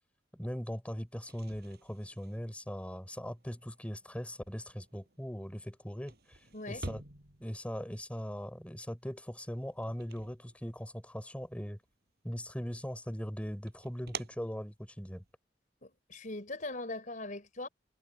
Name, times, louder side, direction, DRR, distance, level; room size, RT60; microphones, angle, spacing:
voice 1, 0.3-6.4 6.7-7.0 7.4-11.8 12.2-15.2, equal, 10° left, 5.6 m, -40 dB
sound 1, 1.2-11.2 11.5-12.3 12.7-15.3, right 3 dB, 65° right, 6.4 m, -50 dB
voice 2, 15.8-17.7, left 2 dB, 50° left, 4.3 m, -40 dB
head